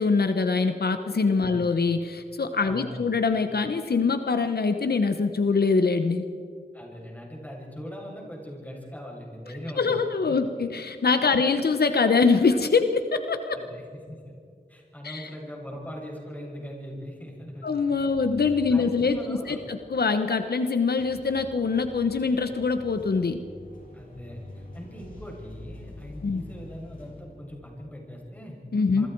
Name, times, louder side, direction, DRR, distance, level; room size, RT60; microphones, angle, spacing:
voice 1, 0.0-6.2 9.8-13.6 15.0-15.3 17.6-23.4 26.2-26.4 28.7-29.1, left 4 dB, 75° left, 8 dB, 1.1 m, -24 dB
voice 2, 1.4-1.7 2.6-3.0 6.7-10.0 11.3-11.4 13.5-14.3 14.7-17.9 18.7-19.7 23.9-28.6 28.9-29.1, equal, 10° left, -2 dB, 7.5 m, -40 dB
sound 1, 17.9-20.6 21.0-27.7, left 1 dB, 60° left, 7.2 m, -46 dB
27.0 x 23.5 x 4.7 m, 2.3 s
wide cardioid pair, 85°, 16 cm